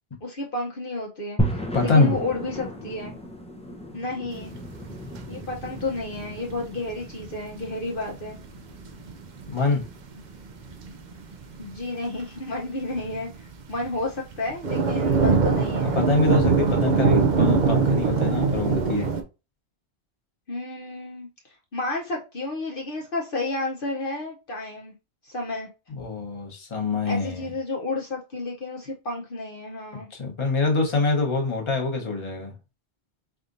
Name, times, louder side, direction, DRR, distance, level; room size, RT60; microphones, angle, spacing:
voice 1, 0.2-3.2 3.9-4.5 5.3-8.4 11.6-16.0 20.5-24.9 25.2-25.7 27.0-30.1, left 2 dB, 60° left, 1.0 m, -31 dB
sound 1, 1.4-11.6, equal, 10° left, 0.5 m, -35 dB
voice 2, 1.7-2.1 9.5-9.8 15.9-19.1 26.0-27.4 30.1-32.5, left 3 dB, 30° left, 1.0 m, -24 dB
sound 2, 4.4-4.5 4.8-12.0 12.3-12.5 12.9-19.2, right 5 dB, 55° right, 0.6 m, -23 dB
4.2 x 3.5 x 2.5 m
omnidirectional pair, 1.1 m